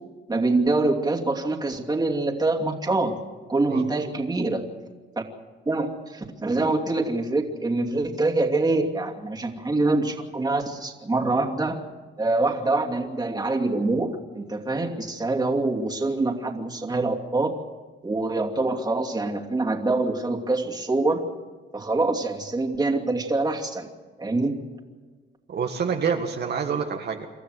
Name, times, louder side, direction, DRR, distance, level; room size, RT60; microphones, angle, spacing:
voice 1, 0.3-3.1 3.5-4.6 5.7-11.8 12.2-17.5 18.0-21.2 21.7-23.9 24.2-24.5, right 2 dB, 20° right, 1 dB, 2.7 m, -25 dB
voice 2, 3.7-4.1 25.5-27.3, right 6 dB, 55° right, 2 dB, 1.8 m, -27 dB
27.5 x 13.5 x 8.0 m, 1.4 s
cardioid pair, 90°, 20 cm